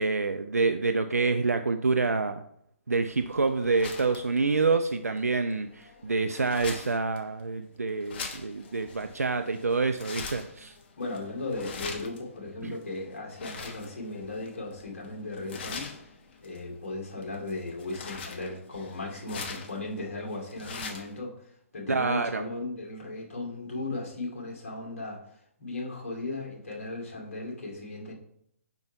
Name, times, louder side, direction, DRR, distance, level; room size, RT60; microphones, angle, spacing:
voice 1, 0.0-2.4 2.9-10.7 12.6-12.7 21.9-22.4, right 4 dB, 90° right, 8 dB, 0.4 m, -27 dB
sound 1, 3.1-21.2, left 4 dB, 45° left, 1.1 m, -43 dB
voice 2, 11.0-16.1 16.4-25.2 25.6-28.1, left 2 dB, 60° left, -2 dB, 2.4 m, -37 dB
5.5 x 4.5 x 4.5 m, 0.70 s
figure-of-eight pair, 135°, 8 cm